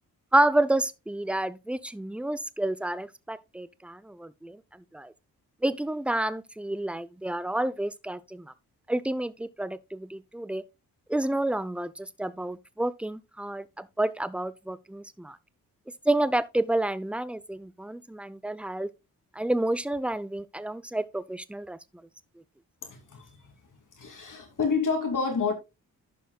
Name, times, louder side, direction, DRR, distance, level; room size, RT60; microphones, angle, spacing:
voice 1, 0.3-4.6 4.9-5.1 5.6-8.5 8.9-10.6 11.1-15.4 16.1-18.9 19.4-21.8, right 1 dB, 5° right, 0.5 m, -29 dB
voice 2, 22.8-23.5 24.0-25.5, left 5 dB, 55° left, 2.9 m, -29 dB
14.5 x 5.6 x 2.3 m
supercardioid pair, 55°, 38 cm